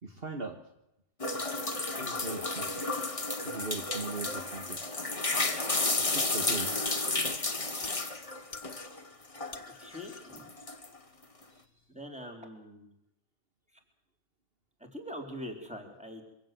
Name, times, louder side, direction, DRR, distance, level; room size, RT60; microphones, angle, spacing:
voice 1, 0.0-0.6 2.0-2.9 3.4-4.8 6.1-6.7, right 4 dB, 55° right, 4 dB, 1.9 m, -39 dB
sound 1, 1.2-9.0 9.3-11.0, left 2 dB, 30° left, 1.6 m, -32 dB
sound 2, 6.8-12.0, left 5 dB, 80° left, 1.9 m, -51 dB
voice 2, 9.6-10.5 11.9-12.9 14.9-16.3, equal, 5° right, 2 dB, 4.0 m, -43 dB
24.0 x 16.0 x 7.8 m, 0.85 s
omnidirectional pair, 1.2 m